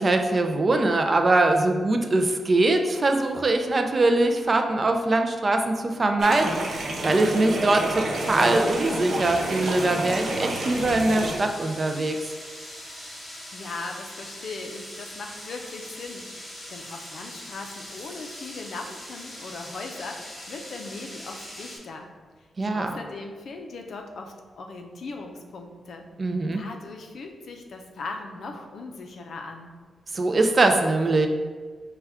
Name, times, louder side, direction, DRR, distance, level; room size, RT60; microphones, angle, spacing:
voice 1, 0.0-12.2 22.6-23.0 26.2-26.6 30.1-31.3, right 2 dB, 30° right, 5 dB, 0.3 m, -22 dB
sound 1, 6.2-11.4, right 2 dB, 65° right, 0.8 m, -29 dB
sound 2, 8.2-21.8, left 1 dB, 45° left, 1.4 m, -41 dB
voice 2, 13.5-22.1 22.4-26.1 26.5-29.7, left 3 dB, 65° left, 3 dB, 0.5 m, -39 dB
5.6 x 2.2 x 3.5 m, 1.5 s
wide cardioid pair, 135°, 0 cm